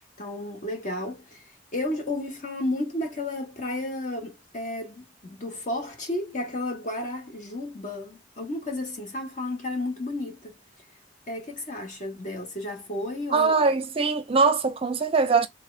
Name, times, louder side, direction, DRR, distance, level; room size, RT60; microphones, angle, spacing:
voice 1, 0.2-1.4 1.7-10.6 11.3-13.8, left 1 dB, 45° left, 1.5 m, -32 dB
voice 2, 13.3-15.5, right 4 dB, 30° right, 0.5 m, -22 dB
3.8 x 3.3 x 3.3 m
head